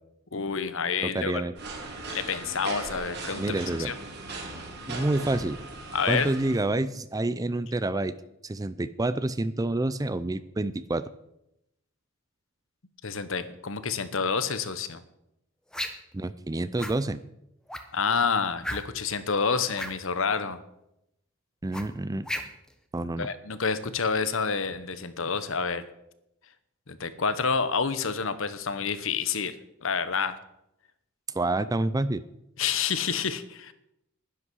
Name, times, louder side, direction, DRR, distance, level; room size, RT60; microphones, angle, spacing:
voice 1, 0.3-1.4 2.1-3.9 5.9-6.3 13.0-15.0 17.9-20.6 23.2-25.8 26.9-29.5 29.8-30.4 32.6-33.7, left 5 dB, 60° left, 13 dB, 1.0 m, -28 dB
voice 2, 1.0-1.5 3.4-3.9 4.9-5.6 6.1-8.1 8.4-11.1 16.1-17.2 21.6-22.3 22.9-23.3 31.3-32.2, right 2 dB, 15° right, 15 dB, 0.4 m, -28 dB
sound 1, 1.6-6.6, right 3 dB, 50° right, 3.0 m, -38 dB
sound 2, 15.7-16.1 16.8-17.0 17.7-18.0 18.6-19.1 19.7-20.0 21.7-22.7, equal, 5° left, 1.1 m, -34 dB
11.0 x 11.0 x 6.3 m, 0.84 s
head